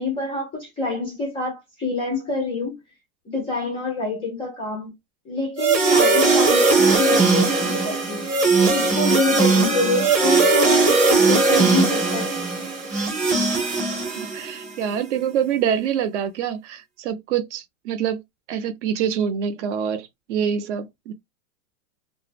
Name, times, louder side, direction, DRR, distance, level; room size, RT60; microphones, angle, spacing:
voice 1, 0.0-2.8 3.3-4.9 5.3-8.3 8.7-12.3, left 3 dB, 15° left, 0.3 m, -26 dB
sound 1, 5.6-14.7, right 3 dB, 20° right, 0.8 m, -19 dB
voice 2, 14.1-18.2 18.5-21.1, right 8 dB, 55° right, 0.6 m, -25 dB
2.1 x 2.0 x 3.2 m
hypercardioid pair, 135°, 44 cm